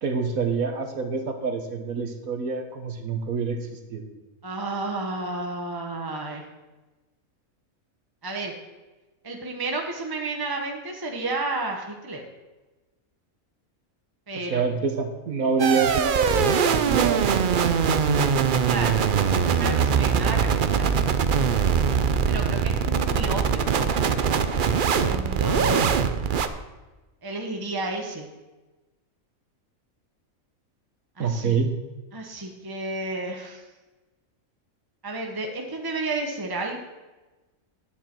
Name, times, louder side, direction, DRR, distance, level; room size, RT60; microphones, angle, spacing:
voice 1, 0.0-4.0 14.5-18.1 31.2-31.7, right 5 dB, 80° right, 6 dB, 1.7 m, -27 dB
voice 2, 4.4-6.4 8.2-8.5 9.2-12.2 14.3-14.6 18.6-20.9 22.2-23.9 24.6-25.9 27.2-28.3 31.2-31.6 32.1-33.6 35.0-36.8, right 2 dB, 20° right, 1 dB, 1.0 m, -31 dB
sound 1, 15.6-26.5, right 6 dB, 55° right, 0.6 m, -22 dB
10.0 x 9.4 x 4.5 m, 1.2 s
omnidirectional pair, 1.5 m